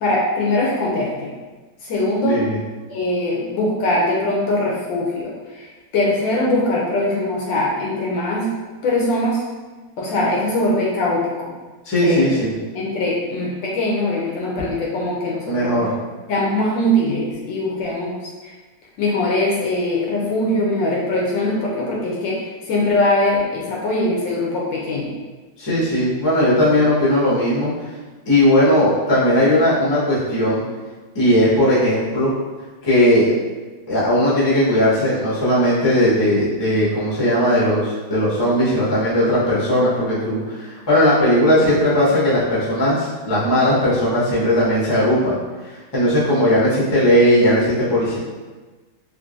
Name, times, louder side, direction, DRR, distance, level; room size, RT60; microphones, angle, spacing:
voice 1, 0.0-1.3 1.8-2.5 2.9-8.5 8.8-9.4 10.0-11.5 12.0-12.4 12.7-15.8 16.3-18.1 18.4-18.5 19.0-25.2, left 1 dB, 75° left, -4 dB, 1.2 m, -21 dB
voice 2, 2.3-2.6 11.8-12.5 15.5-15.9 25.6-27.7 28.3-30.6 31.1-32.3 32.8-33.3 33.9-45.4 45.9-48.2, left 1 dB, 25° left, -9 dB, 0.6 m, -17 dB
3.7 x 2.9 x 2.5 m, 1.3 s
omnidirectional pair, 2.2 m